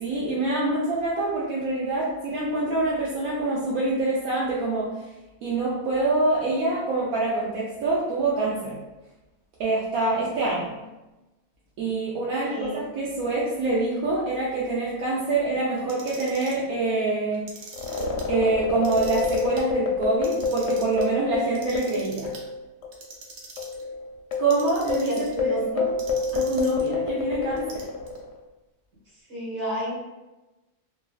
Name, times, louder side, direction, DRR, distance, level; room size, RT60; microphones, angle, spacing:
voice 1, 0.0-4.9 5.4-8.8 9.6-10.7 11.8-17.5 18.3-22.3 24.4-25.9 26.3-27.8, right 2 dB, 80° right, -6 dB, 1.0 m, -25 dB
voice 2, 10.4-10.8 12.2-12.8 25.0-25.6 29.3-29.9, equal, 45° right, -8 dB, 1.3 m, -32 dB
Clock, 15.8-16.6 17.3-18.2 18.7-19.6 20.1-21.0 21.6-22.4 22.9-23.8 24.3-25.4 26.0-26.9 27.6-28.2, right 3 dB, 65° right, 0.7 m, -43 dB
sound 1, 17.7-22.6 22.8-23.0 23.6-28.3, left 4 dB, 65° left, 0.8 m, -28 dB
2.9 x 2.5 x 2.3 m, 1.1 s
omnidirectional pair, 1.5 m